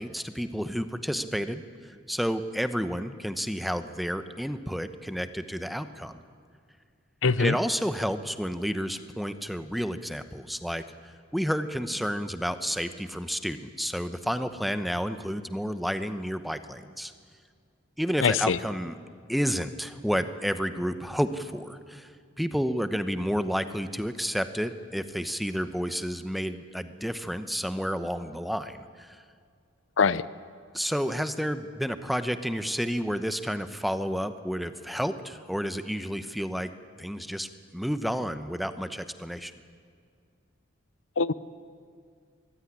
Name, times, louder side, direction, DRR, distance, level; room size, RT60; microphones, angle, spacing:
voice 1, 0.0-1.6 2.1-6.2 7.4-17.1 18.0-19.0 19.3-22.1 22.4-29.2 30.7-36.7 37.0-39.5, equal, ahead, 10 dB, 0.9 m, -30 dB
voice 2, 7.2-7.5 18.2-18.6 30.0-30.2 41.2-41.3, left 5 dB, 75° left, 17 dB, 0.7 m, -23 dB
23.5 x 15.5 x 10.0 m, 2.2 s
head